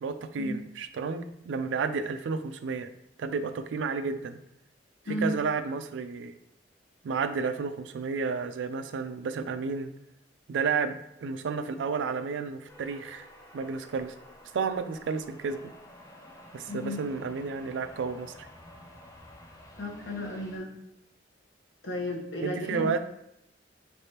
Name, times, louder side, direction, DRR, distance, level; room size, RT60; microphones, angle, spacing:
voice 1, 0.0-2.9 3.2-4.4 5.2-6.3 7.0-9.9 10.5-13.3 13.5-14.1 14.5-15.6 16.5-18.5 22.4-23.1, right 5 dB, 80° right, 10 dB, 0.3 m, -31 dB
sound 1, 12.7-20.6, left 1 dB, 20° left, 0.5 m, -51 dB
voice 2, 16.7-17.0 19.8-20.7 21.8-22.9, left 1 dB, 70° left, 0 dB, 0.9 m, -33 dB
4.3 x 3.3 x 2.8 m, 0.79 s
head